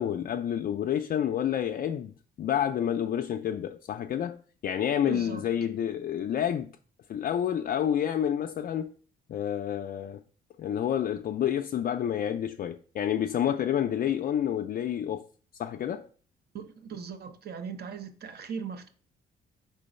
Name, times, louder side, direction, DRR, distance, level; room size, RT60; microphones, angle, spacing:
voice 1, 0.0-6.7 7.1-8.9 9.3-10.2 10.6-15.2 15.6-16.1, left 10 dB, 50° left, 0.4 m, -29 dB
voice 2, 5.1-5.7 16.5-18.9, right 6 dB, 55° right, 0.9 m, -39 dB
4.9 x 3.8 x 5.3 m
cardioid pair, 90°, 20 cm